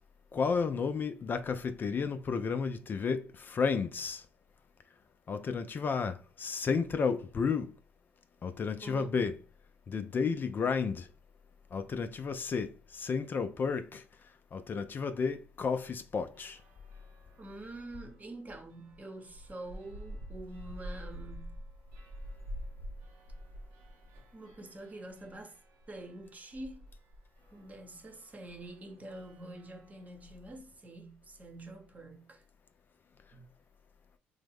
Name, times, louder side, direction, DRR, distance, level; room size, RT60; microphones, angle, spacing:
voice 1, 0.3-4.2 5.3-7.7 8.4-9.4 9.9-11.1 11.7-14.0 14.5-16.6, left 5 dB, 40° left, 0.3 m, -32 dB
voice 2, 8.8-9.2 17.4-21.5 24.3-25.5 25.9-26.8 27.5-32.4 33.3-33.5, right 2 dB, 30° right, 0.8 m, -46 dB
sound 1, 16.4-18.2 18.7-30.2, equal, 75° right, 0.7 m, -48 dB
3.4 x 2.0 x 3.4 m
hypercardioid pair, 60°, 5 cm